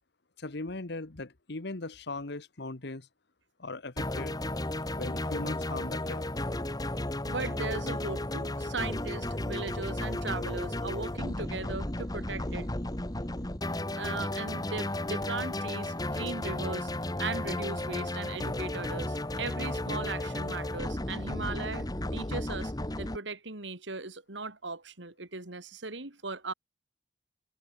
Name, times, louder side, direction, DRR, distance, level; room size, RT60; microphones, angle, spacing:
voice 1, 0.4-3.1 3.6-4.4 4.9-6.2, left 2 dB, 60° left, 1.3 m, -39 dB
sound 1, 4.0-23.2, left 1 dB, 20° left, 1.7 m, -34 dB
voice 2, 7.3-12.7 13.7-16.9 17.2-21.9 22.1-22.7 23.0-26.5, right 3 dB, 70° right, 2.9 m, -38 dB
head